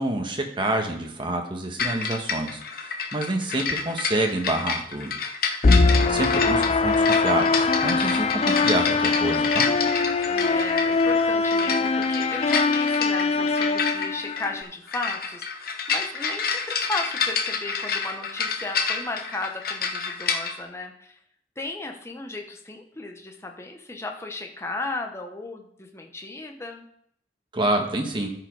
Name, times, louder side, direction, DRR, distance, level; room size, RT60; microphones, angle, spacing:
voice 1, 0.0-5.1 6.1-9.7 27.5-28.3, right 1 dB, 30° right, 3 dB, 1.3 m, -27 dB
sound 1, 1.8-20.5, left 5 dB, 55° left, 0.9 m, -29 dB
sound 2, 5.6-14.6, left 3 dB, 35° left, 0.4 m, -22 dB
voice 2, 5.7-6.2 10.3-21.2 21.6-26.8, left 2 dB, 15° left, 2 dB, 1.0 m, -35 dB
13.0 x 5.2 x 4.7 m, 0.70 s
head